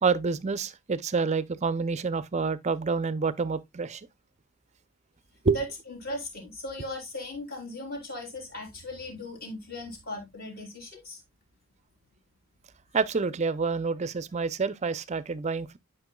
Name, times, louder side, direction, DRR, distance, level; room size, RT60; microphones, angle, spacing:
voice 1, 0.0-4.1 5.4-5.6 12.9-15.8, right 4 dB, 30° right, 0.5 m, -28 dB
voice 2, 5.5-11.2, left 1 dB, 45° left, 3.6 m, -38 dB
12.0 x 5.5 x 2.2 m
head